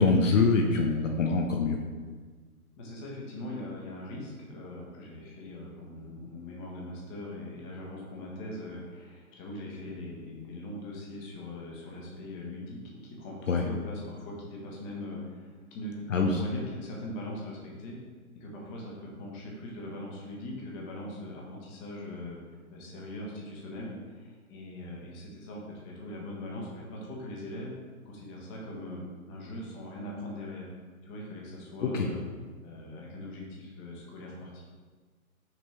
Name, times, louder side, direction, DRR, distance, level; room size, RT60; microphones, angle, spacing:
voice 1, 0.0-1.8 13.5-13.6 16.1-16.4 31.9-32.1, left 4 dB, 60° left, 2 dB, 0.8 m, -24 dB
voice 2, 2.8-18.0 18.3-22.4 22.7-27.7 28.0-30.7 31.0-32.2 32.6-34.6, left 1 dB, 20° left, -2 dB, 1.2 m, -41 dB
6.1 x 4.4 x 4.6 m, 1.5 s
figure-of-eight pair, 135°, 44 cm